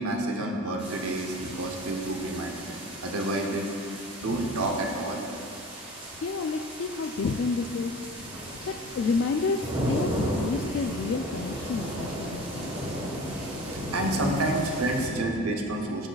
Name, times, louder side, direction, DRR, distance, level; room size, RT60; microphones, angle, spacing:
voice 1, 0.0-3.7 4.2-5.2 13.5-16.1, right 2 dB, 80° right, 2 dB, 0.8 m, -29 dB
sound 1, 0.8-15.1, right 1 dB, 25° right, 1.3 m, -35 dB
voice 2, 4.2-4.8 6.2-8.3 8.7-13.0 13.8-14.4 15.1-15.3, left 4 dB, 55° left, 4 dB, 0.3 m, -31 dB
14.5 x 6.4 x 2.4 m, 2.3 s
head